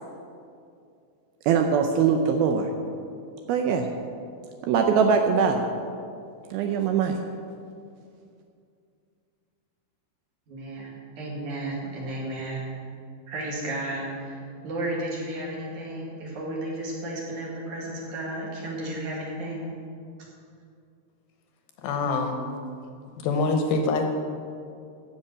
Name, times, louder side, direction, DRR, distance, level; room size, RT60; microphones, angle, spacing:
voice 1, 1.5-2.7 3.5-3.9 4.7-5.6 6.5-7.2, right 6 dB, 80° right, 4 dB, 2.3 m, -22 dB
voice 2, 10.5-12.7 13.3-19.6 20.2-20.3, right 1 dB, 55° right, -4 dB, 3.3 m, -33 dB
voice 3, 21.8-22.5 23.2-24.0, left 3 dB, 75° left, 4 dB, 2.5 m, -25 dB
14.0 x 5.9 x 7.7 m, 2.4 s
omnidirectional pair, 4.8 m